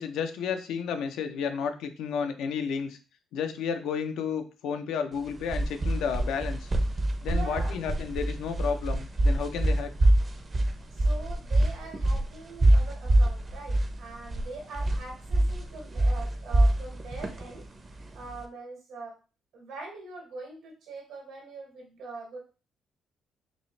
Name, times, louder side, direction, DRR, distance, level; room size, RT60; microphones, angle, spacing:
voice 1, 0.0-3.0 3.3-6.7 7.2-9.9, left 6 dB, 85° left, 7 dB, 0.5 m, -32 dB
sound 1, 5.2-18.4, right 1 dB, 35° right, 0.6 m, -25 dB
voice 2, 7.3-7.8 10.9-17.7 18.1-19.2 19.5-22.4, right 3 dB, 85° right, -1 dB, 1.9 m, -42 dB
5.1 x 2.0 x 3.1 m, 0.33 s
cardioid pair, 90°, 0 cm